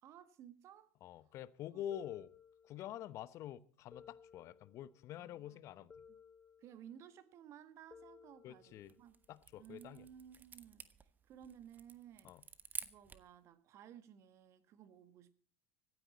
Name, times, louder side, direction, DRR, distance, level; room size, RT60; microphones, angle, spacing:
voice 1, 0.0-0.9 1.7-1.8 5.1-5.6 6.6-9.2 9.6-10.9 11.2-12.3 12.8-15.3, right 9 dB, 50° right, 1.6 m, -57 dB
voice 2, 1.0-2.3 2.6-5.9 8.4-8.9 9.3-10.0 12.2-12.4, left 11 dB, 50° left, 0.9 m, -47 dB
sound 1, 1.9-3.1 3.9-5.1 5.9-7.1 7.9-9.1, left 6 dB, 25° left, 0.7 m, -61 dB
sound 2, 8.7-13.4, right 6 dB, 25° right, 1.2 m, -51 dB
25.0 x 9.4 x 4.3 m
hypercardioid pair, 80°, 7 cm